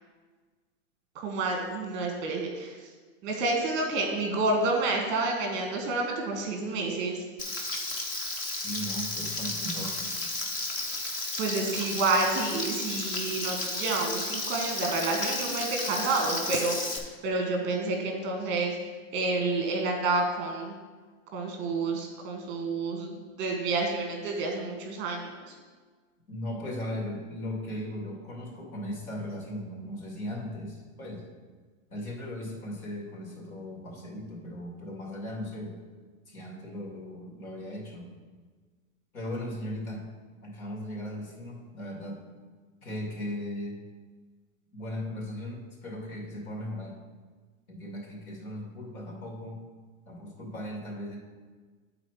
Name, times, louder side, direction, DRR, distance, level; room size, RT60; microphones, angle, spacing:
voice 1, 1.1-2.8 3.2-7.2 10.9-18.8 19.1-20.7 21.3-25.4, right 3 dB, 25° right, 2 dB, 1.1 m, -29 dB
Frying (food), 7.4-17.0, left 2 dB, 20° left, 0.6 m, -33 dB
voice 2, 8.3-10.1 26.3-31.2 31.9-35.8 36.3-38.1 39.1-40.1 40.4-42.2 42.8-43.9 44.7-47.0 47.7-49.7 50.1-51.2, left 1 dB, 90° left, -2 dB, 2.4 m, -37 dB
9.8 x 4.1 x 4.6 m, 1.4 s
hypercardioid pair, 150°, 41 cm